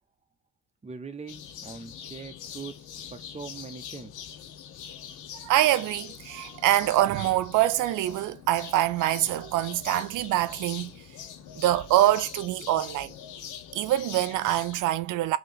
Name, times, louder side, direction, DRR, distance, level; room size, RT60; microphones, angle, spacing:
voice 1, 0.8-4.1, right 4 dB, 20° right, 0.8 m, -42 dB
sound 1, 1.3-14.8, left 9 dB, 85° left, 0.7 m, -43 dB
voice 2, 5.4-10.9 11.6-13.1 13.7-15.4, right 14 dB, 80° right, 0.5 m, -25 dB
3.2 x 2.9 x 3.9 m
cardioid pair, 90°, 30 cm